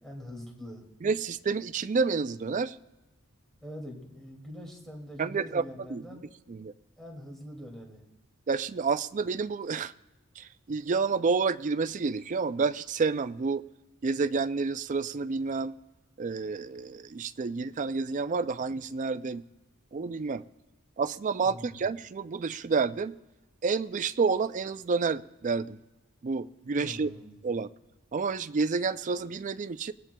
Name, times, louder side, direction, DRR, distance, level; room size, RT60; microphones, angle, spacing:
voice 1, 0.0-0.9 3.6-6.3 7.0-8.0 21.4-21.9 26.8-27.4, equal, ahead, 2.2 m, -44 dB
voice 2, 1.0-2.8 5.2-5.6 5.9-6.0 6.5-6.7 8.5-9.9 10.4-13.6 14.0-15.7 16.2-19.4 19.9-20.4 21.0-23.2 23.6-25.8 26.2-27.1 27.4-27.7 28.1-29.9, right 4 dB, 35° right, 0.4 m, -29 dB
25.0 x 18.0 x 2.2 m
head